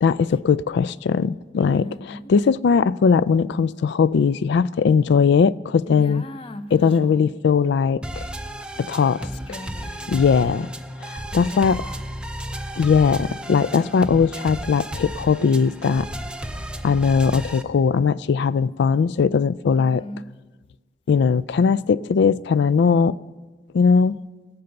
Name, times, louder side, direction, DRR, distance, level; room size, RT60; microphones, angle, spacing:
voice 1, 0.0-1.9 2.3-6.2 6.7-8.3 8.8-9.3 10.1-10.7 11.0-11.8 12.8-16.1 16.8-20.0 21.1-23.2 23.7-24.2, left 5 dB, 65° left, 0.3 m, -19 dB
voice 2, 1.6-2.3 5.9-7.4 9.3-10.7 11.3-12.1 19.7-20.3, left 1 dB, 30° left, 0.7 m, -38 dB
sound 1, 8.0-17.6, right 1 dB, 5° right, 0.5 m, -33 dB
18.5 x 6.8 x 7.8 m
head